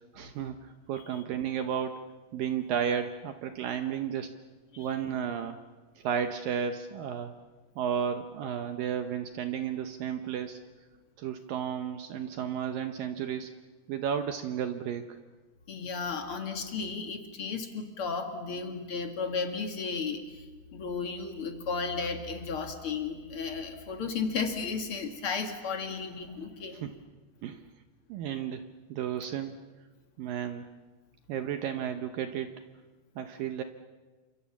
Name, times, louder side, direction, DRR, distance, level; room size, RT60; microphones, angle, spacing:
voice 1, 0.1-2.0 2.3-4.3 4.8-5.6 6.0-7.3 7.8-10.6 11.2-13.5 13.9-15.2 26.8-26.9 27.4-27.6 28.1-28.6 28.9-29.6 30.2-30.6 31.3-32.5 33.2-33.6, right 8 dB, 75° right, 8 dB, 2.2 m, -33 dB
voice 2, 15.7-20.5 20.7-26.9, left 5 dB, 45° left, 5 dB, 2.1 m, -34 dB
29.5 x 26.0 x 7.2 m, 1.3 s
omnidirectional pair, 5.0 m